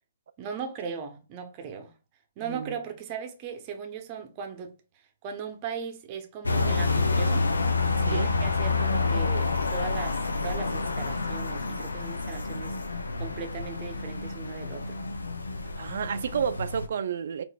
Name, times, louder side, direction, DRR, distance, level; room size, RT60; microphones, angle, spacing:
voice 1, 0.4-1.9 2.4-4.7 5.2-7.5 8.1-12.8 13.2-15.0, right 6 dB, 35° right, 0.7 m, -38 dB
voice 2, 2.4-2.8 8.1-8.3 15.8-17.4, right 7 dB, 60° right, 0.3 m, -31 dB
sound 1, 6.4-16.9, left 3 dB, 90° left, 0.4 m, -28 dB
3.7 x 2.5 x 2.2 m
figure-of-eight pair, 130°, 0 cm